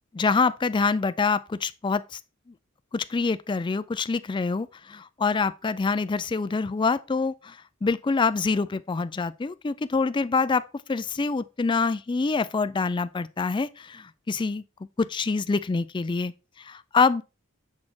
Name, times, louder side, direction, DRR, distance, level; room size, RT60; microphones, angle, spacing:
voice 1, 0.1-2.2 2.9-10.6 10.9-14.6 15.0-16.3 16.6-17.2, left 4 dB, 25° left, 0.4 m, -26 dB
7.3 x 4.2 x 4.7 m
head